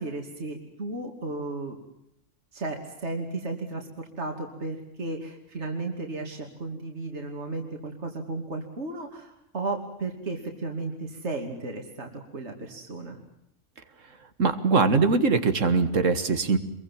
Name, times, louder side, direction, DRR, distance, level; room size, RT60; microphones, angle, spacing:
voice 1, 0.0-1.8 2.5-13.2, right 2 dB, 60° right, 2 dB, 3.0 m, -34 dB
voice 2, 14.4-16.6, right 4 dB, 80° right, 10 dB, 2.0 m, -22 dB
26.0 x 22.5 x 7.4 m, 0.78 s
omnidirectional pair, 1.3 m